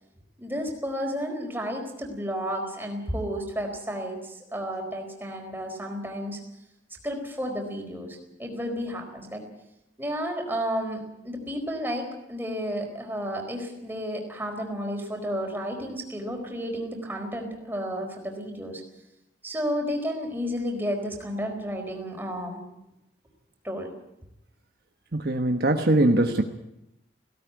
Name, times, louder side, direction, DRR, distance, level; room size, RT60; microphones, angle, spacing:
voice 1, 0.4-6.4 7.0-9.4 10.0-18.8 19.4-22.6 23.6-23.9, equal, 10° right, 2 dB, 4.5 m, -32 dB
voice 2, 25.1-26.4, right 1 dB, 55° right, 5 dB, 1.3 m, -21 dB
17.5 x 17.5 x 9.4 m, 0.86 s
head